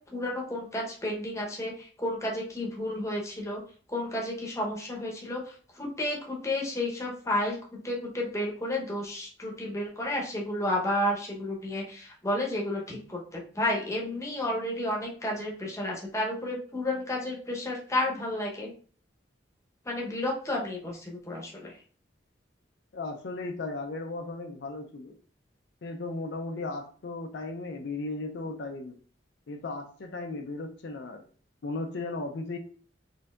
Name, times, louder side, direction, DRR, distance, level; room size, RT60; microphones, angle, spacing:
voice 1, 0.1-3.6 3.9-7.6 7.8-18.7 19.8-21.8, left 1 dB, 15° left, -2 dB, 0.8 m, -31 dB
voice 2, 22.9-25.1 25.8-29.0 29.5-31.2 31.6-32.6, left 2 dB, 70° left, 4 dB, 0.4 m, -36 dB
4.3 x 2.7 x 2.3 m, 0.43 s
head